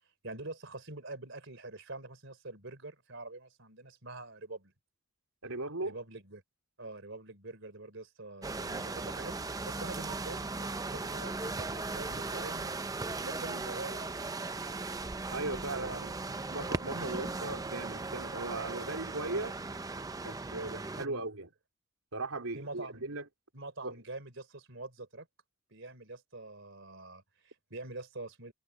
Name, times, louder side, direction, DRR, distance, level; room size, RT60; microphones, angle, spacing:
voice 1, 0.2-4.7 5.8-6.4 6.8-12.7 13.3-14.4 15.7-16.1 16.9-17.2 21.0-21.2 22.6-23.1 23.5-25.3 25.7-28.5, right 2 dB, 60° right, 3.8 m, -45 dB
voice 2, 5.4-6.0 13.2-13.3 15.3-16.1 16.4-19.6 20.2-21.5 22.1-23.3 23.8-24.0, right 2 dB, 85° right, 3.6 m, -38 dB
sound 1, 8.4-21.1, right 3 dB, 15° right, 0.5 m, -38 dB
head